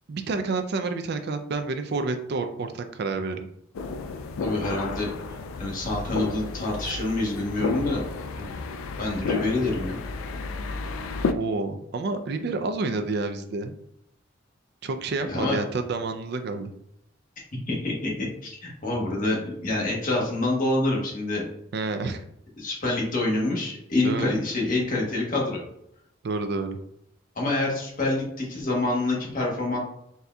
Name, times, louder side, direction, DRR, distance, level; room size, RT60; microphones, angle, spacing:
voice 1, 0.1-3.5 11.3-13.7 14.8-16.7 21.7-22.2 24.0-24.4 26.2-26.8, right 3 dB, 50° right, 7 dB, 0.3 m, -29 dB
sound 1, 3.7-11.3, left 4 dB, 85° left, 0.3 m, -32 dB
voice 2, 4.4-5.1 5.6-8.0 8.4-8.6 9.0-10.0 15.2-15.6 17.7-18.1 18.4-21.4 22.6-25.6 27.3-29.8, left 2 dB, 40° left, -3 dB, 1.2 m, -27 dB
4.1 x 3.6 x 2.3 m, 0.75 s
head